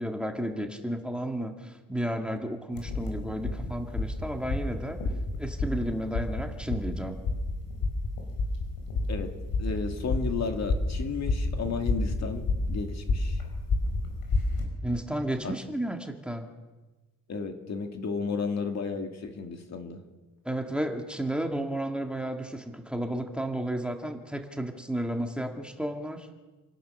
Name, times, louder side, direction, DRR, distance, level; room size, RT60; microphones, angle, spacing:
voice 1, 0.0-5.0 5.4-7.2 14.8-16.5 20.4-26.3, right 1 dB, 5° right, 4 dB, 1.8 m, -32 dB
sound 1, 2.7-14.6, left 2 dB, 85° left, 5.7 m, -30 dB
voice 2, 9.6-13.4 15.4-15.6 17.3-20.0, left 5 dB, 50° left, 5 dB, 2.4 m, -33 dB
28.0 x 18.0 x 6.5 m, 1.2 s
wide cardioid pair, 150°, 34 cm